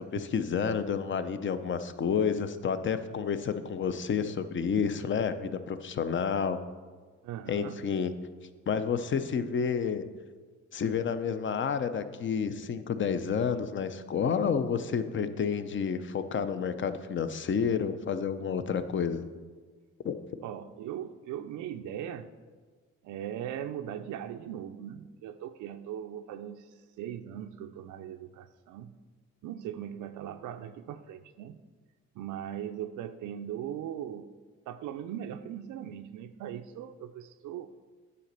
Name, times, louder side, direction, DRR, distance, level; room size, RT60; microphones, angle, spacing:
voice 1, 0.0-6.6 7.5-8.1 8.7-10.0 10.7-19.2 20.0-20.2, left 6 dB, 40° left, 11 dB, 0.6 m, -30 dB
voice 2, 7.2-7.8 20.4-22.3 23.0-26.7 27.0-28.9 29.4-31.6 32.2-34.3 34.7-37.7, right 10 dB, 80° right, 8 dB, 0.5 m, -39 dB
9.2 x 4.2 x 6.7 m, 1.4 s
cardioid pair, 90°, 30 cm